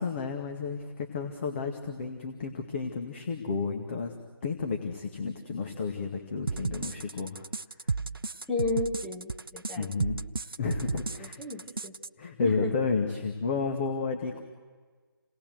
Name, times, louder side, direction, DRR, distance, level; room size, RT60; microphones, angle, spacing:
voice 1, 0.0-4.1 4.4-7.5 9.8-10.2 10.6-11.4 12.2-14.4, left 4 dB, 30° left, 3 dB, 2.1 m, -32 dB
sound 1, 6.5-12.1, right 4 dB, 70° right, 0.8 m, -33 dB
voice 2, 8.5-9.9 11.2-11.9 12.4-12.9, left 3 dB, 5° left, -2 dB, 1.3 m, -33 dB
29.0 x 19.0 x 7.9 m, 1.5 s
figure-of-eight pair, 155°, 12 cm